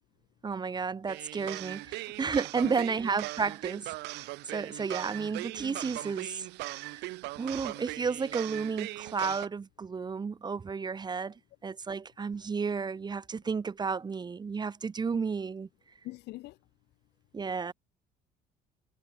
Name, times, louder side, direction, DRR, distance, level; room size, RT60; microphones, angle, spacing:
voice 1, 0.4-3.9 4.5-6.5 6.8-7.0 7.4-11.3 11.6-15.7 17.3-17.7, right 5 dB, 25° right, 0.8 m, -32 dB
sound 1, 1.1-9.5, right 21 dB, 90° right, 1.5 m, -39 dB
voice 2, 2.6-3.0 16.0-16.6, left 18 dB, 85° left, 2.3 m, -42 dB
cardioid pair, 110°, 17 cm